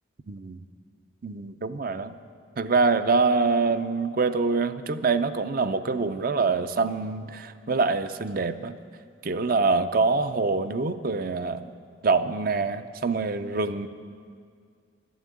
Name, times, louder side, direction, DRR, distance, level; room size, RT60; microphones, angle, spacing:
voice 1, 0.3-0.6 1.2-2.1 2.6-8.8 9.2-11.7 12.0-13.9, right 4 dB, 45° right, 11 dB, 0.5 m, -25 dB
12.5 x 11.0 x 8.4 m, 2.1 s
head